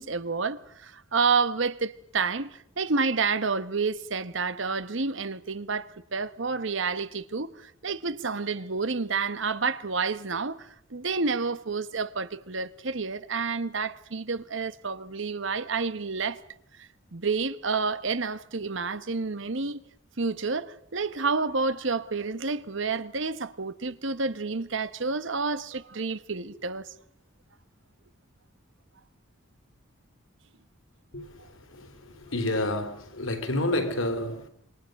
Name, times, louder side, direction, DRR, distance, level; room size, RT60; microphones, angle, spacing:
voice 1, 0.0-16.4 16.8-19.8 20.2-26.9, right 4 dB, 65° right, 1.2 m, -29 dB
voice 2, 32.3-34.5, left 1 dB, 80° left, 3.6 m, -28 dB
26.5 x 25.0 x 6.6 m
head